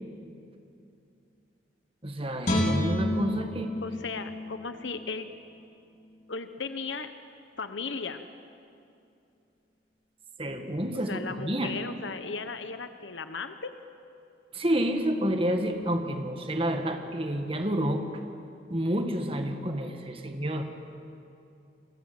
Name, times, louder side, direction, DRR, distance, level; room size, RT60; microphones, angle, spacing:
voice 1, 2.0-3.7 10.4-11.7 14.5-18.2 18.7-20.6, equal, 30° right, 5 dB, 1.9 m, -29 dB
Guitar, 2.4-5.6 6.0-6.2, left 1 dB, 40° left, 3.6 m, -30 dB
voice 2, 3.8-5.3 6.3-7.1 7.6-8.2 11.1-13.7, left 4 dB, 85° left, 9 dB, 1.1 m, -36 dB
30.0 x 23.0 x 7.9 m, 2.7 s
head